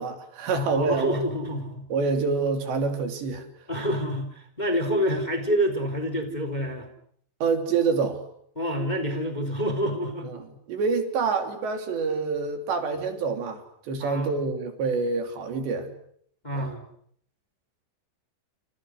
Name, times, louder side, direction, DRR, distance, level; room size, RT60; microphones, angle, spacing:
voice 1, 0.0-1.2 1.9-3.5 7.4-8.2 10.2-13.6 13.9-15.9 16.5-16.7, right 4 dB, 75° right, 5.4 m, -27 dB
voice 2, 0.5-1.9 3.7-6.9 8.5-10.3 14.0-14.4 16.4-16.8, equal, 10° left, 3.3 m, -27 dB
29.5 x 29.0 x 6.5 m
omnidirectional pair, 5.0 m